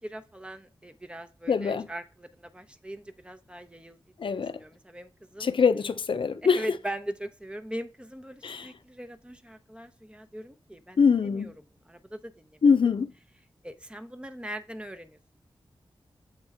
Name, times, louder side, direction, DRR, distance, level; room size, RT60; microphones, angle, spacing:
voice 1, 0.0-4.3 4.6-5.5 6.4-11.5 11.9-12.6 13.6-15.4, right 1 dB, 10° right, 0.7 m, -40 dB
voice 2, 1.5-1.9 4.2-4.6 5.4-6.7 8.4-8.7 11.0-11.5 12.6-13.1, left 5 dB, 65° left, 0.6 m, -23 dB
7.5 x 4.5 x 3.5 m
wide cardioid pair, 80°, 9 cm